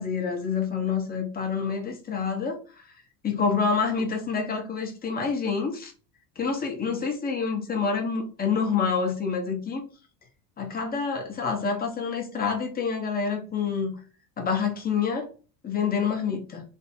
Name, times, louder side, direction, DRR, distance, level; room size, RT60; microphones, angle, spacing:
voice 1, 0.0-2.6 3.2-5.9 6.4-9.8 10.6-13.9 14.4-15.3 15.6-16.6, left 5 dB, 20° left, 3 dB, 1.0 m, -27 dB
3.5 x 3.2 x 4.2 m, 0.36 s
cardioid pair, 145°, 41 cm